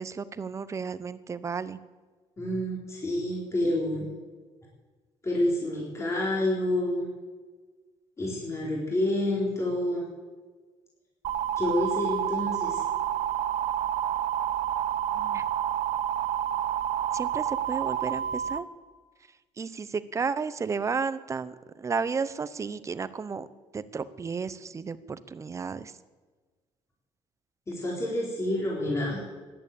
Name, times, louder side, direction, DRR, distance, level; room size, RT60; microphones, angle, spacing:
voice 1, 0.0-1.8 15.1-15.4 17.1-18.7 19.6-23.5 23.7-25.9, right 5 dB, 25° right, 14 dB, 0.8 m, -33 dB
voice 2, 2.4-4.1 5.2-7.0 8.2-10.1 11.6-12.8 27.7-29.2, left 1 dB, 25° left, -4 dB, 4.0 m, -28 dB
sound 1, 11.2-18.6, right 10 dB, 75° right, 0.8 m, -29 dB
14.5 x 11.0 x 8.5 m, 1.4 s
cardioid pair, 130°, 12 cm